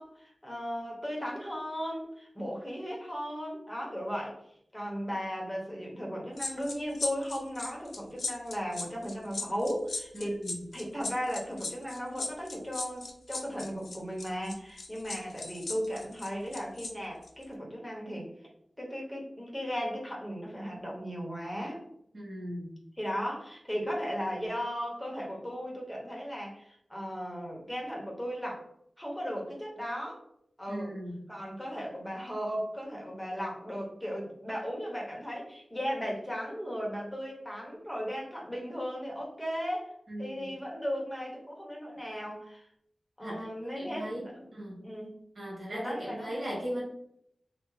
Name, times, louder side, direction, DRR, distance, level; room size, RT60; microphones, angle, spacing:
voice 1, 0.0-4.4 4.7-10.4 10.7-18.3 18.8-21.8 23.0-28.6 29.0-30.2 30.6-31.0 31.3-39.9 40.2-42.7 43.2-45.1 45.7-46.4, equal, 10° left, -2 dB, 1.1 m, -36 dB
sound 1, 6.4-16.9 17.2-17.4, left 3 dB, 85° left, 0.4 m, -37 dB
voice 2, 10.1-10.6 22.1-22.8 30.7-31.2 40.1-40.5 43.2-44.8 45.3-46.8, equal, 65° right, -4 dB, 1.5 m, -38 dB
3.4 x 2.2 x 3.2 m, 0.71 s
wide cardioid pair, 80°, 0 cm